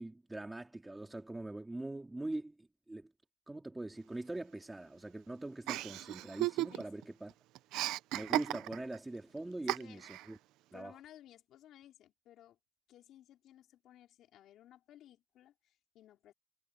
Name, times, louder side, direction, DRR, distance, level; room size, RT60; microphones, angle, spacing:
voice 1, 0.0-3.1 3.5-7.3 8.1-10.4 10.7-10.9, right 2 dB, 5° right, 2.3 m, -43 dB
Chuckle chortle, 5.7-7.0 7.3-9.0 9.7-10.3, right 17 dB, 45° right, 0.6 m, -35 dB
voice 2, 6.7-7.1 9.6-10.0 10.7-12.6 12.9-16.3, left 12 dB, 35° left, 4.5 m, -59 dB
cardioid pair, 175°, 0 cm